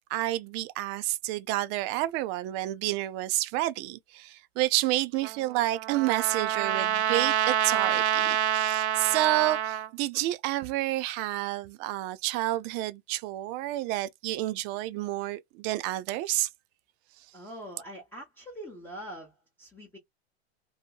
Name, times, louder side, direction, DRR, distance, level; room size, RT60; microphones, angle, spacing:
voice 1, 0.1-16.5, right 16 dB, 30° right, 0.4 m, -29 dB
Trumpet, 5.2-9.9, right 10 dB, 85° right, 0.5 m, -27 dB
voice 2, 17.3-19.3 19.6-20.0, equal, 5° left, 0.8 m, -43 dB
2.7 x 2.7 x 2.2 m
hypercardioid pair, 115°, 33 cm